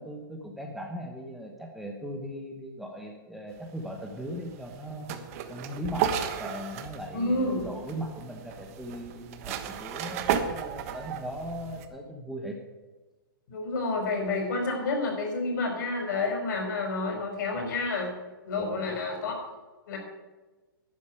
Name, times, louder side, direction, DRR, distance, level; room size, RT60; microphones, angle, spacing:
voice 1, 0.0-5.1 5.5-12.6 18.6-19.0, equal, ahead, 1 dB, 1.1 m, -38 dB
sound 1, 3.6-11.8, right 8 dB, 40° right, 1.2 m, -34 dB
voice 2, 7.1-7.7 13.5-18.1 18.4-19.3 19.9-20.0, left 3 dB, 55° left, 2 dB, 5.0 m, -29 dB
11.5 x 7.0 x 9.2 m, 1.2 s
hypercardioid pair, 150°, 12 cm